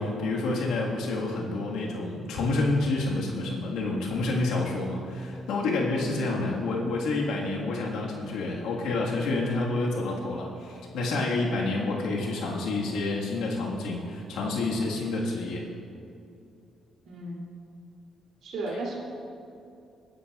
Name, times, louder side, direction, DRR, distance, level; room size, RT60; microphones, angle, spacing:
voice 1, 0.0-15.6, left 2 dB, 90° left, -2 dB, 1.7 m, -28 dB
voice 2, 17.0-17.5 18.4-19.0, right 2 dB, 70° right, -3 dB, 2.9 m, -36 dB
18.0 x 10.0 x 2.4 m, 2.6 s
cardioid pair, 90°, 0 cm